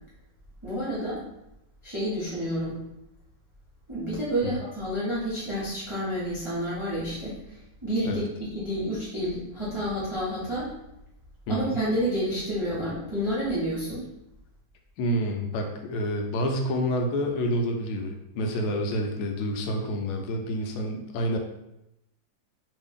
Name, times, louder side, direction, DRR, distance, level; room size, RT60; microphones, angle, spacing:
voice 1, 0.6-1.2 1.8-2.8 3.9-10.7 11.5-14.0, equal, 25° right, -10 dB, 0.7 m, -29 dB
voice 2, 11.5-11.8 15.0-21.4, equal, 85° left, 3 dB, 1.4 m, -28 dB
3.2 x 2.6 x 3.5 m, 0.85 s
omnidirectional pair, 2.2 m